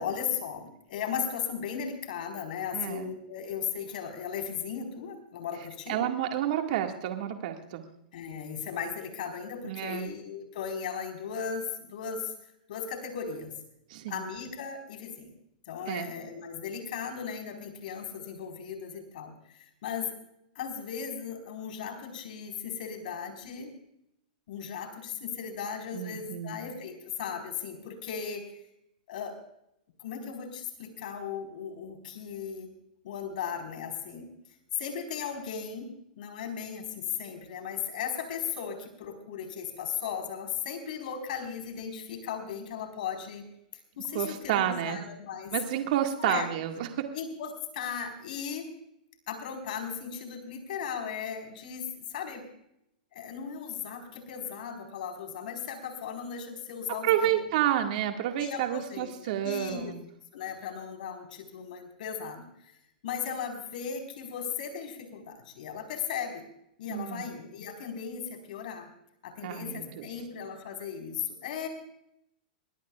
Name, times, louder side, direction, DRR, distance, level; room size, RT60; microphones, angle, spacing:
voice 1, 0.0-6.1 8.1-12.3 12.7-13.5 14.1-15.3 15.7-20.1 20.5-23.7 24.5-28.4 29.1-29.4 30.0-32.7 33.0-34.3 34.8-35.9 36.2-43.4 43.7-45.5 46.2-46.5 47.1-48.7 49.3-52.4 53.1-57.4 58.4-59.1 59.4-59.9 60.3-62.7 63.0-66.4 66.8-68.9 69.2-71.7, left 7 dB, 65° left, 5 dB, 4.5 m, -37 dB
voice 2, 2.7-3.1 5.9-7.8 9.6-10.1 13.9-14.2 15.9-16.1 25.9-26.6 44.1-45.0 45.5-47.2 56.9-60.0 66.9-67.3 69.4-70.1, right 11 dB, 55° right, 4 dB, 1.9 m, -30 dB
23.5 x 18.0 x 2.4 m, 0.78 s
hypercardioid pair, 135°, 5 cm